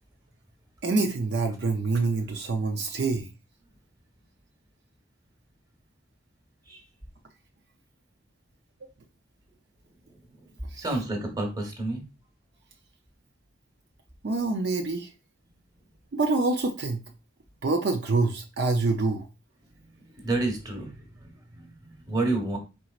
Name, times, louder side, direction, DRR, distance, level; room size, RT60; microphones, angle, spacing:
voice 1, 0.8-3.3 10.7-10.8 14.2-15.1 16.1-17.0 17.6-19.3, right 3 dB, 60° right, 4 dB, 0.5 m, -26 dB
voice 2, 10.8-12.0 20.2-22.6, right 2 dB, 20° right, 2 dB, 1.1 m, -30 dB
4.5 x 4.1 x 2.4 m, 0.28 s
head